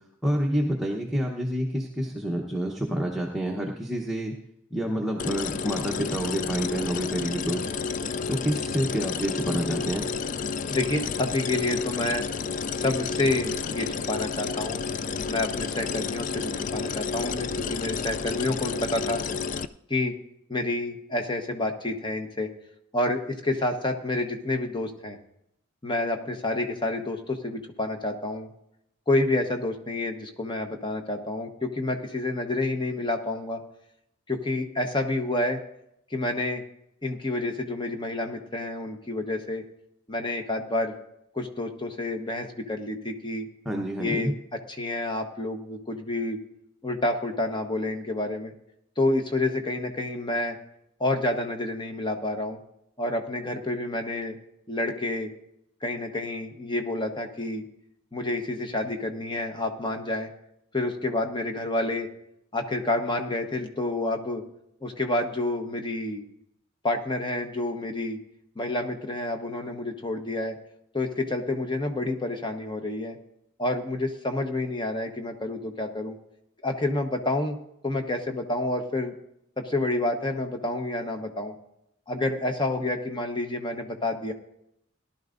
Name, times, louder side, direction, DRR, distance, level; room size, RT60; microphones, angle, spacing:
voice 1, 0.2-4.4 4.7-7.6 8.3-10.1 43.6-44.3, right 1 dB, ahead, -2 dB, 0.9 m, -28 dB
sound 1, 5.2-19.7, left 5 dB, 35° left, 0.3 m, -31 dB
voice 2, 10.7-12.3 12.8-14.8 15.3-19.2 19.9-20.1 20.5-22.5 22.9-25.2 25.8-28.5 29.1-33.6 34.3-35.6 36.1-36.6 37.0-39.6 40.1-41.0 41.3-43.5 44.0-46.4 46.8-48.5 49.0-50.6 51.0-52.6 53.0-54.4 54.7-55.3 55.8-57.6 58.1-60.3 60.7-62.1 62.5-64.4 64.8-66.2 66.8-68.2 68.6-70.6 70.9-73.2 73.6-76.2 76.6-77.6 77.8-79.1 79.6-81.5 82.1-84.3, left 2 dB, 20° left, 5 dB, 1.0 m, -29 dB
18.0 x 11.5 x 2.6 m, 0.78 s
head